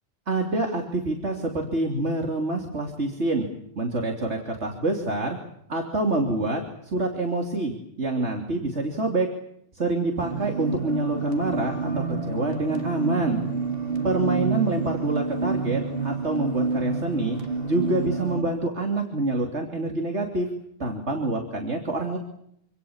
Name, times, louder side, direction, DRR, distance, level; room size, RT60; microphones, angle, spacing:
voice 1, 0.3-3.5 3.8-5.4 5.7-9.3 9.7-13.4 14.0-17.4 17.6-20.5 20.8-22.2, right 2 dB, 70° right, 2 dB, 3.5 m, -26 dB
sound 1, 10.2-18.4, right 4 dB, 55° right, 2.8 m, -28 dB
27.5 x 26.5 x 7.3 m, 0.76 s
omnidirectional pair, 1.2 m